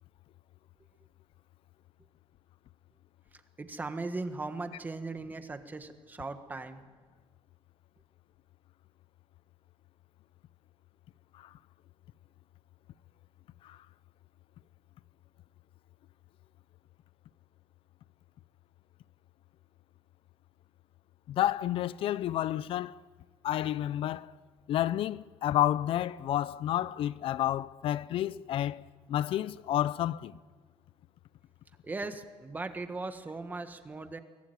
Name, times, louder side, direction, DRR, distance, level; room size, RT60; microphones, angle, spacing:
voice 1, 3.3-6.8 31.8-34.2, right 3 dB, 15° right, 1.5 m, -38 dB
voice 2, 21.3-22.9 23.4-24.3 24.7-30.3, left 12 dB, 60° left, 0.6 m, -30 dB
23.5 x 17.5 x 9.4 m
cardioid pair, 150°, 11 cm